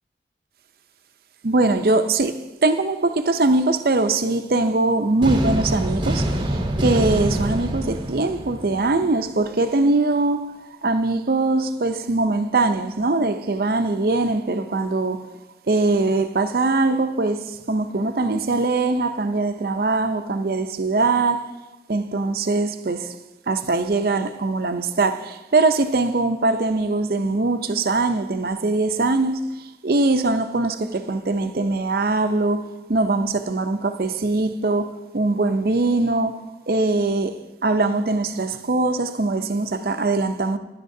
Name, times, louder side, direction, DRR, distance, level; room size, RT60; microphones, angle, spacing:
voice 1, 1.4-10.5 10.8-15.3 15.7-21.5 21.9-23.2 23.5-40.6, right 2 dB, 55° right, 0.6 m, -22 dB
sound 1, 5.2-9.2, right 1 dB, 25° right, 0.8 m, -25 dB
16.5 x 11.0 x 2.7 m
head